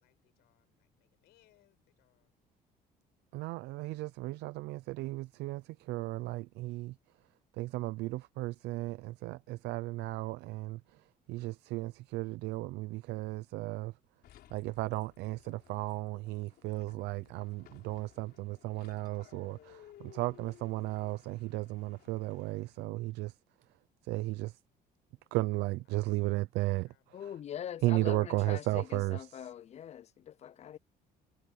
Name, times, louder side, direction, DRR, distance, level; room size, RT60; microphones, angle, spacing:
voice 1, 0.0-2.3 26.8-27.3, left 17 dB, 85° left, 6.0 m, -71 dB
voice 2, 3.3-6.9 7.6-10.8 11.3-13.9 14.5-23.3 24.1-24.5 25.3-26.9 27.2-27.3 27.8-29.5, right 19 dB, 85° right, 0.5 m, -35 dB
sound 1, 14.2-23.0, left 12 dB, 70° left, 4.0 m, -59 dB
voice 3, 27.1-30.8, left 10 dB, 40° left, 0.5 m, -43 dB
cardioid pair, 110°, 17 cm